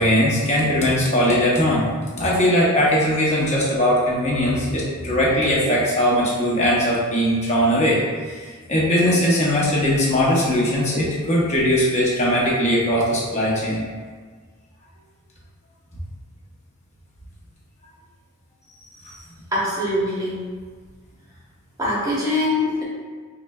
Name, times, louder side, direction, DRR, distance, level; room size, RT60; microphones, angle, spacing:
voice 1, 0.0-1.9 2.2-8.0 8.3-13.8, equal, 30° left, -5 dB, 0.9 m, -20 dB
voice 2, 19.5-20.4 21.8-22.8, left 1 dB, 15° right, -6 dB, 0.9 m, -23 dB
4.8 x 3.1 x 2.3 m, 1.6 s
head